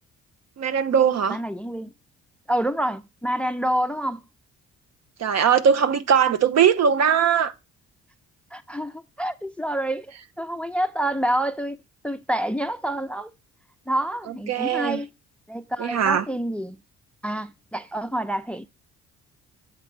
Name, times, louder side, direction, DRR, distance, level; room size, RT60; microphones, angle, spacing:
voice 1, 0.6-1.4 5.2-7.5 14.3-15.0 15.8-16.3, right 7 dB, 60° right, 0.9 m, -20 dB
voice 2, 1.3-1.9 2.5-4.2 8.5-11.8 12.0-13.3 13.9-15.1 15.5-16.8 17.2-18.7, right 1 dB, 5° left, 0.4 m, -27 dB
7.8 x 3.2 x 5.9 m
cardioid pair, 90°, 30 cm